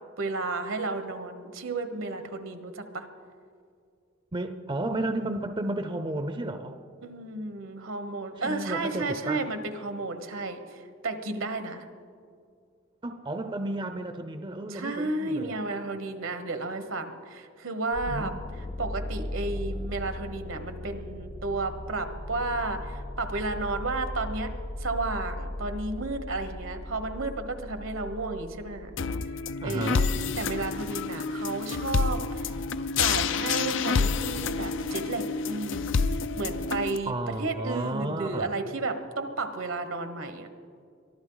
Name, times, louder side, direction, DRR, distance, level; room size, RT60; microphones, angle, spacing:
voice 1, 0.2-3.1 7.0-10.8 11.0-11.9 14.7-18.3 18.8-24.5 24.8-28.9 29.6-30.1 30.4-32.5 32.9-35.9 36.4-37.1 37.4-40.5, right 3 dB, 75° right, 8 dB, 1.3 m, -32 dB
voice 2, 4.3-6.8 8.4-9.4 13.0-15.6 18.1-18.4 29.6-30.1 37.1-38.5, right 1 dB, 25° right, 8 dB, 0.6 m, -32 dB
sound 1, 17.9-30.6, left 1 dB, 25° left, 0.7 m, -38 dB
sound 2, 29.0-37.0, left 5 dB, 65° left, 0.5 m, -28 dB
23.5 x 13.5 x 4.0 m, 2.3 s
head